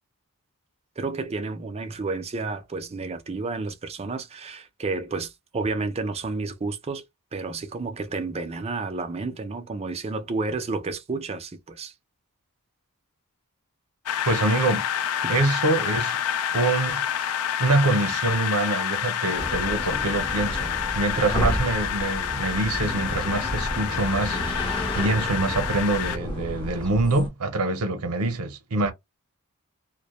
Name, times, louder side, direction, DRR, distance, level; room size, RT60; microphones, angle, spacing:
voice 1, 1.0-7.0 7.3-11.9 15.2-15.4 21.2-21.5, right 3 dB, 30° right, 0.4 m, -31 dB
sound 1, 14.1-26.2, left 9 dB, 70° left, 0.3 m, -28 dB
voice 2, 14.2-14.9 15.3-16.2 16.5-17.2 17.6-28.9, right 2 dB, 80° right, 0.6 m, -25 dB
sound 2, 19.3-27.3, equal, 20° left, 0.6 m, -32 dB
sound 3, 22.8-27.1, right 1 dB, 45° left, 0.9 m, -40 dB
2.1 x 2.0 x 2.9 m
head